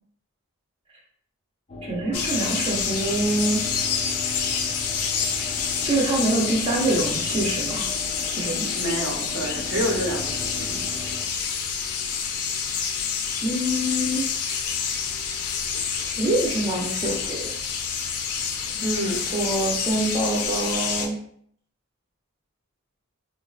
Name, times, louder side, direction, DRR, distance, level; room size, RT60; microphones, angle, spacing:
sound 1, 1.7-11.2, left 1 dB, 30° left, 0.4 m, -38 dB
voice 1, 1.8-3.6 5.8-7.9 8.3-8.7 13.4-14.2 16.0-17.5 18.7-18.9 19.3-21.2, right 2 dB, 25° right, -2 dB, 0.4 m, -25 dB
sound 2, 2.1-21.1, left 6 dB, 90° left, 0.4 m, -28 dB
voice 2, 8.8-10.8 18.8-19.2, right 1 dB, 75° right, -1 dB, 0.7 m, -28 dB
3.7 x 2.1 x 2.3 m, 0.65 s
head